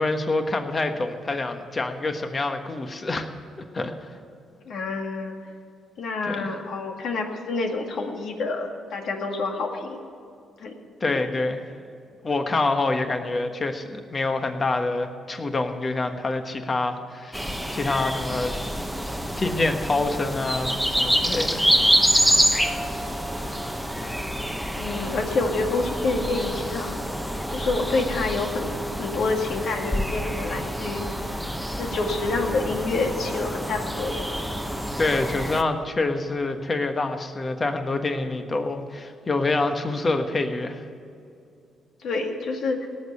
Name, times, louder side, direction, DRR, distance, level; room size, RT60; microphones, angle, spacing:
voice 1, 0.0-3.3 3.7-4.1 6.3-6.5 11.0-11.7 12.2-17.4 17.7-18.5 19.4-21.7 22.1-22.5 35.0-40.8, left 2 dB, 30° left, 6 dB, 1.3 m, -26 dB
voice 2, 4.7-5.3 6.0-10.1 10.6-10.7 11.1-11.4 13.2-13.3 24.8-27.0 27.5-31.3 31.8-34.3 42.0-42.9, left 3 dB, 65° left, 3 dB, 2.0 m, -28 dB
sound 1, 17.3-35.6, equal, ahead, 1.0 m, -27 dB
18.0 x 6.7 x 9.6 m, 2.5 s
cardioid pair, 90°, 0 cm